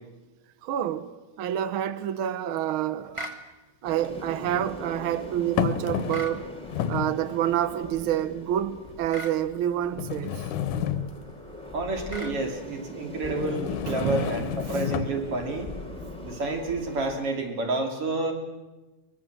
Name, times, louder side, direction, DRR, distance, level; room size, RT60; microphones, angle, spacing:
voice 1, 0.6-3.2 3.8-6.5 6.9-10.5 13.9-14.3, right 11 dB, 75° right, 1.2 m, -28 dB
sound 1, 2.6-2.7 4.0-4.7 5.6-6.4 6.7-7.2 8.0-8.1 8.9-9.0 10.0-11.4 13.3-15.2, left 9 dB, 85° left, 2.6 m, -30 dB
sound 2, 3.1-3.4 6.1-6.4 9.1-9.4 12.1-12.4, equal, 20° right, 0.7 m, -37 dB
sound 3, 3.8-17.3, left 1 dB, ahead, 2.6 m, -41 dB
voice 2, 11.7-15.7 16.2-18.3, right 2 dB, 50° right, 3.7 m, -29 dB
23.0 x 22.0 x 7.5 m
omnidirectional pair, 3.5 m